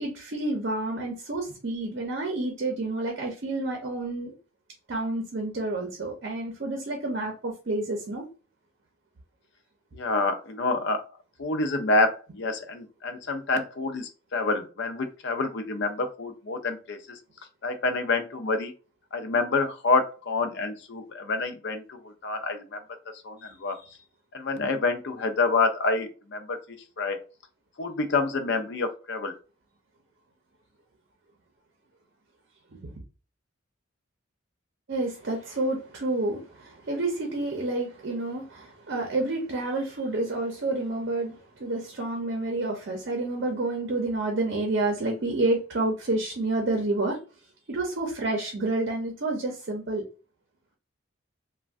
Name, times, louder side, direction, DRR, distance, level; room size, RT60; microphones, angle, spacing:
voice 1, 0.0-4.3 4.9-8.2 23.7-23.9 32.7-32.9 34.9-47.2 47.7-50.0, right 2 dB, 55° right, 0.6 m, -29 dB
voice 2, 9.9-11.0 11.4-17.2 17.6-18.7 19.1-22.8 23.2-23.8 24.3-27.2 27.8-29.3, left 3 dB, 60° left, 0.5 m, -27 dB
3.3 x 2.2 x 2.5 m
head